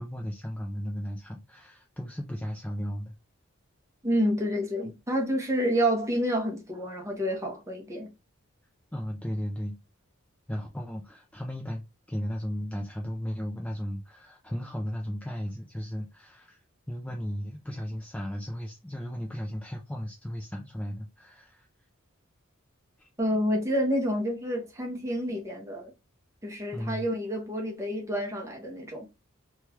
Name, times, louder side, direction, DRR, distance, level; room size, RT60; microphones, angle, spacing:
voice 1, 0.0-3.1 8.9-9.8 10.5-11.8 12.1-16.6 16.9-21.7 23.0-23.1 26.7-27.1, equal, 5° left, 0.3 m, -35 dB
voice 2, 4.0-8.1 23.2-25.9 26.4-29.1, equal, 15° right, 0.7 m, -29 dB
3.0 x 2.3 x 3.0 m
head